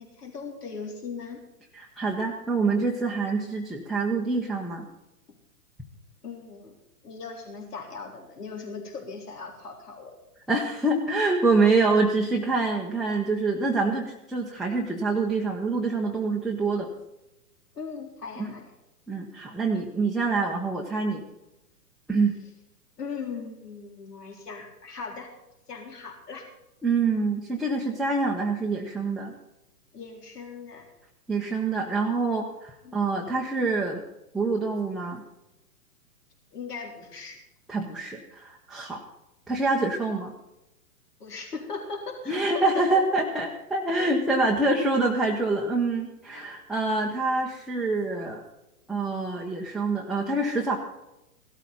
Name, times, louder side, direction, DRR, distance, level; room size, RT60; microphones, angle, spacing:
voice 1, 0.0-1.4 5.3-5.4 6.2-6.8 7.0-10.1 17.7-18.7 23.0-25.3 25.7-26.4 29.9-30.9 32.8-33.0 36.5-37.4 41.2-43.0 44.0-44.4 46.3-46.5, left 5 dB, 80° left, 1 dB, 3.9 m, -39 dB
voice 2, 1.8-4.9 10.5-16.9 18.4-18.5 19.1-21.2 22.1-22.3 26.8-29.3 31.3-34.0 34.3-35.2 37.7-39.0 39.5-40.3 42.3-48.4 48.9-50.8, right 3 dB, ahead, -2 dB, 0.7 m, -26 dB
16.5 x 13.0 x 4.0 m, 0.93 s
hypercardioid pair, 130°, 46 cm